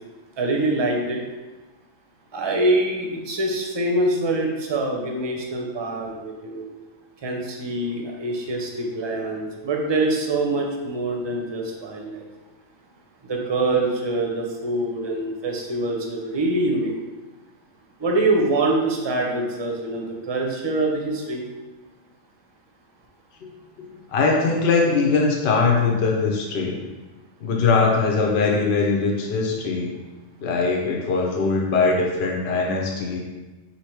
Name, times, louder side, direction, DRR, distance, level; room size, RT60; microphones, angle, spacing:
voice 1, 0.4-1.2 2.3-6.7 7.2-12.2 13.3-16.9 18.0-21.4, right 2 dB, 30° right, 1 dB, 0.5 m, -24 dB
voice 2, 23.8-26.8 27.4-29.9 30.4-33.2, left 4 dB, 70° left, -1 dB, 0.9 m, -21 dB
3.9 x 2.8 x 4.5 m, 1.2 s
omnidirectional pair, 1.1 m